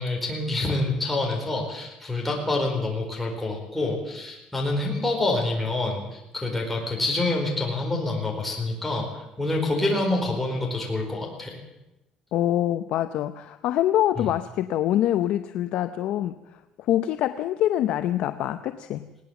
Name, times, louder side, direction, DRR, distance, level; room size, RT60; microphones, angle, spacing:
voice 1, 0.0-11.6 14.2-14.3, left 2 dB, 5° left, -1 dB, 4.5 m, -27 dB
voice 2, 12.3-19.1, left 12 dB, 60° left, 10 dB, 0.7 m, -25 dB
20.0 x 18.0 x 7.1 m, 0.95 s
cardioid pair, 165°, 2 cm